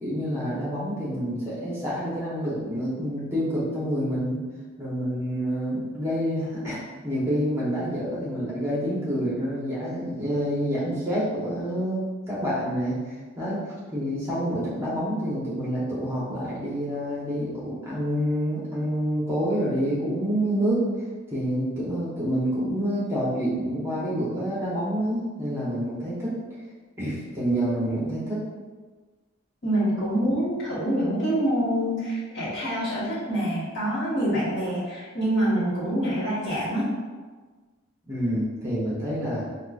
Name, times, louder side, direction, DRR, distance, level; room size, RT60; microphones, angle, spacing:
voice 1, 0.0-4.4 4.8-6.8 7.0-13.6 13.9-20.8 21.3-26.3 27.0-28.4 38.1-39.4, equal, 10° right, -9 dB, 0.8 m, -27 dB
voice 2, 29.6-36.8, right 1 dB, 55° left, -9 dB, 1.3 m, -26 dB
4.5 x 2.4 x 2.3 m, 1.4 s
head